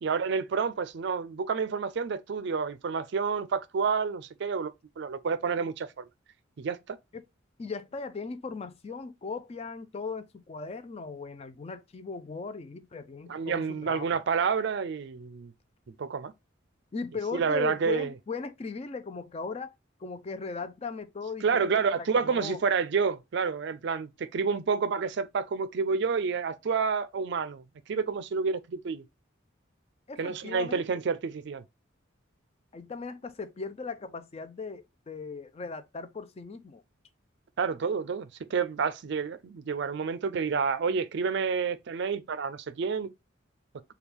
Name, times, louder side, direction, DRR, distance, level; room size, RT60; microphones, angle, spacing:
voice 1, 0.0-6.1 6.6-7.0 13.3-15.5 15.9-16.3 17.3-18.1 21.4-27.6 27.9-29.0 30.2-31.6 37.6-43.1, right 5 dB, 60° right, 0.4 m, -29 dB
voice 2, 7.6-14.1 16.9-19.7 20.0-22.6 30.1-30.8 32.7-36.8, left 4 dB, 30° left, 0.4 m, -38 dB
3.5 x 2.3 x 4.4 m
head